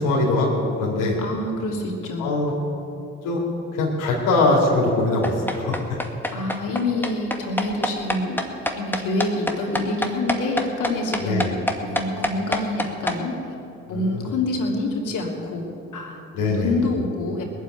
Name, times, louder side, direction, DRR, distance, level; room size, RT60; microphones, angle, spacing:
voice 1, 0.0-1.2 2.2-2.5 3.2-3.4 3.7-6.0 11.2-11.5 13.9-14.3 16.3-16.8, left 2 dB, 85° left, -3 dB, 2.6 m, -22 dB
voice 2, 1.2-2.5 6.3-8.4 8.8-13.5 13.9-16.2 16.4-17.4, left 2 dB, 70° left, 0 dB, 3.1 m, -27 dB
sound 1, 5.2-13.2, left 1 dB, 5° left, 1.8 m, -25 dB
19.5 x 7.5 x 9.3 m, 2.8 s
supercardioid pair, 55°, 33 cm